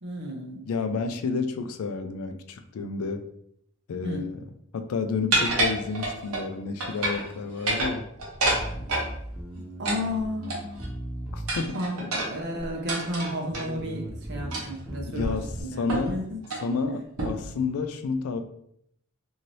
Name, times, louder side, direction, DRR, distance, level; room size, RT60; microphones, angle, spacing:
voice 1, 0.0-0.7 4.0-4.3 9.8-10.9 11.7-16.4 16.8-16.9, left 1 dB, 50° right, 1 dB, 0.7 m, -33 dB
voice 2, 0.7-3.3 3.9-4.4 4.7-8.1 11.3-11.8 15.0-15.5 15.8-16.2 16.6-18.4, left 4 dB, 75° left, 8 dB, 0.4 m, -30 dB
sound 1, 5.3-6.5 6.8-7.3 7.6-9.1 9.8-10.9 11.5-13.7 14.5-14.8 15.2-15.3 15.9-16.1 16.4-16.7 17.2-17.5, right 2 dB, 90° right, 0.8 m, -28 dB
Bass guitar, 8.4-12.0 12.6-13.2 13.5-15.6, right 1 dB, 5° right, 0.3 m, -37 dB
3.1 x 2.7 x 2.6 m, 0.72 s
head